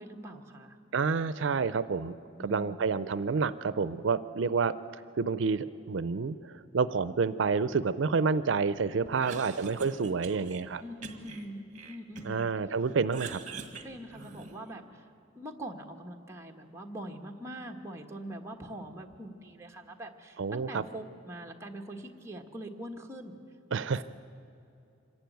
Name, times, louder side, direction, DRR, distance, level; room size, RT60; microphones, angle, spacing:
voice 1, 0.0-0.8 2.3-2.9 10.8-12.5 13.8-15.1 15.3-23.4, right 1 dB, 15° right, 1 dB, 1.3 m, -43 dB
voice 2, 0.9-2.1 2.4-4.7 5.2-10.8 12.2-13.4 20.4-20.8 23.7-24.0, right 5 dB, 75° right, 14 dB, 0.5 m, -29 dB
Cough, 9.0-10.6 11.0-12.5 12.8-14.7, right 5 dB, 40° right, 1.6 m, -44 dB
26.0 x 11.5 x 9.3 m, 2.7 s
head